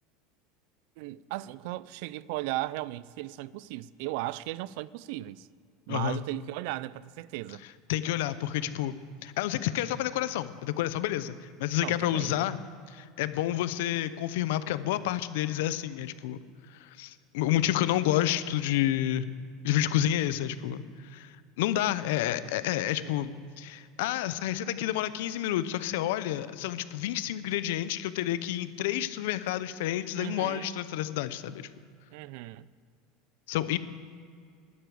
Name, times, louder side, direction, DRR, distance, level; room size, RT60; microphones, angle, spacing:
voice 1, 1.0-5.5 5.9-7.6 11.8-12.5 23.0-23.1 30.2-30.8 32.1-32.7, right 17 dB, 55° right, 0.3 m, -36 dB
voice 2, 5.9-6.2 7.9-12.6 12.9-16.4 16.7-19.3 19.6-31.7 33.5-33.8, left 13 dB, 70° left, 0.6 m, -29 dB
11.5 x 9.5 x 7.0 m
supercardioid pair, 175°, 0 cm